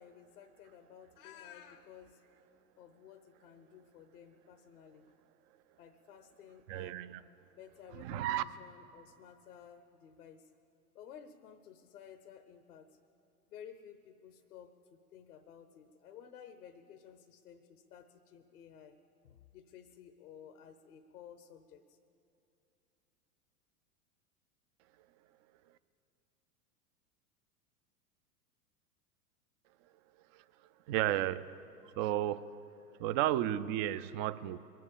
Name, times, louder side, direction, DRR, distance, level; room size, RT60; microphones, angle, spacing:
voice 1, 0.0-2.2 2.8-5.1 5.8-7.0 7.5-10.5 10.9-12.9 13.5-19.0 19.2-22.0, left 8 dB, 75° left, 8 dB, 0.9 m, -54 dB
voice 2, 6.7-7.2 7.9-8.4 30.3-30.4 30.9-31.5 31.8-32.5 33.0-34.6, right 13 dB, 35° right, 15 dB, 0.4 m, -33 dB
22.5 x 7.7 x 6.9 m, 2.7 s
hypercardioid pair, 95°, 45 cm